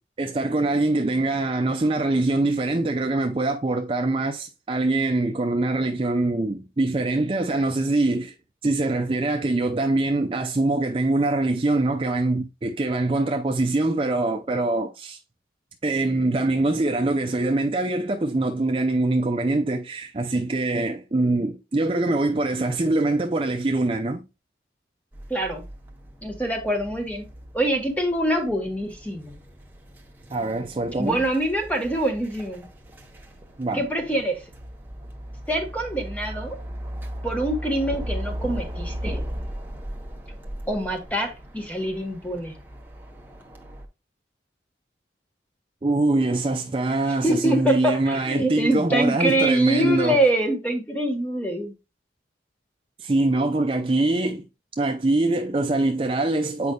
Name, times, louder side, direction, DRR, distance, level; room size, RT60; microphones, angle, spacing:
voice 1, 0.2-8.3 8.6-15.2 15.8-24.2 30.3-31.2 33.6-33.8 45.8-50.2 53.0-54.4 54.8-56.7, right 2 dB, 30° right, 0.5 m, -23 dB
sound 1, 25.1-43.8, equal, 10° right, 0.8 m, -37 dB
voice 2, 25.3-25.6 26.2-27.3 27.5-29.4 31.0-32.7 33.7-34.4 35.5-36.6 37.2-39.2 40.7-42.6 47.2-51.7, right 1 dB, 10° left, 1.3 m, -24 dB
8.0 x 5.1 x 2.3 m
head